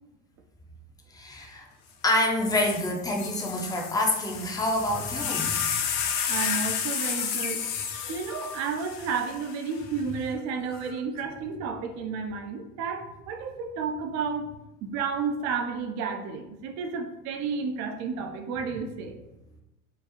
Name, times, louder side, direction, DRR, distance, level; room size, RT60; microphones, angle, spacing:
voice 1, 1.1-1.7 2.0-5.6, left 1 dB, 10° left, 1 dB, 0.6 m, -27 dB
sound 1, 2.1-2.2 2.4-9.8 10.7-11.2, left 7 dB, 50° left, 0.6 m, -31 dB
voice 2, 6.3-7.6 8.1-14.5 14.8-19.2, right 5 dB, 40° right, 4 dB, 0.5 m, -32 dB
4.6 x 2.3 x 2.9 m, 0.96 s
hypercardioid pair, 100°, 42 cm